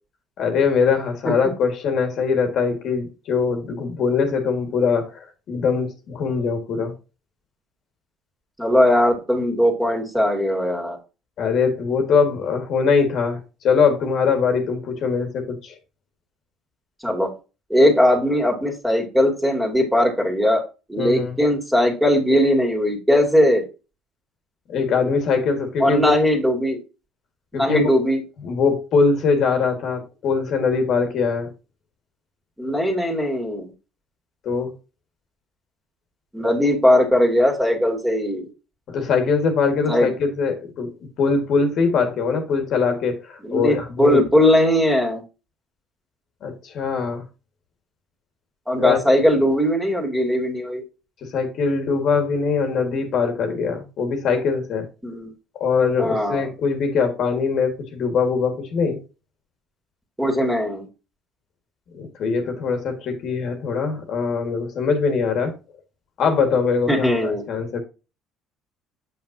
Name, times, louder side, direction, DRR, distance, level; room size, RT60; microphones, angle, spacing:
voice 1, 0.4-6.9 11.4-13.4 13.6-15.8 21.0-21.4 24.7-26.2 27.5-27.9 28.4-31.5 34.5-34.7 38.9-40.9 41.2-44.2 46.4-47.2 48.8-49.0 51.3-54.9 55.6-59.0 61.9-65.5 66.2-67.8, left 5 dB, 60° left, 1.7 m, -22 dB
voice 2, 8.6-11.0 17.0-17.3 17.7-20.6 20.9-23.7 25.8-26.8 27.5-28.2 32.6-33.7 36.3-38.5 39.9-40.1 43.4-45.2 48.7-50.8 55.0-55.3 56.0-56.5 60.2-60.9 66.9-67.5, equal, 5° right, 2.6 m, -19 dB
7.2 x 5.6 x 2.7 m
hypercardioid pair, 65°, 0 cm